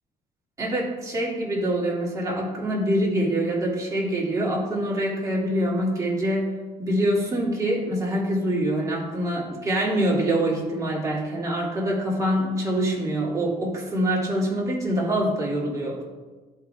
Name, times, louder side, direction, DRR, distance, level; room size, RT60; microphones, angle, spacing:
voice 1, 0.6-6.5 6.8-16.0, right 1 dB, 20° right, -5 dB, 2.7 m, -25 dB
12.0 x 4.6 x 3.5 m, 1.2 s
cardioid pair, 110°, 17 cm